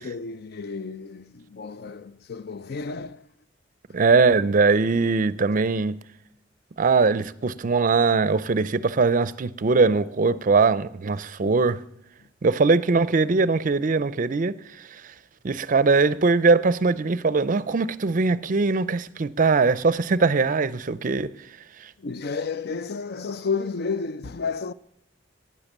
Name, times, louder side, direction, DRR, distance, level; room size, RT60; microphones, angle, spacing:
voice 1, 0.0-3.2 11.4-11.6 22.0-24.7, left 4 dB, 55° left, 0.5 m, -31 dB
voice 2, 3.9-6.0 6.8-11.8 12.4-14.6 15.4-21.3, right 4 dB, 45° right, 0.5 m, -21 dB
12.0 x 9.6 x 7.2 m
head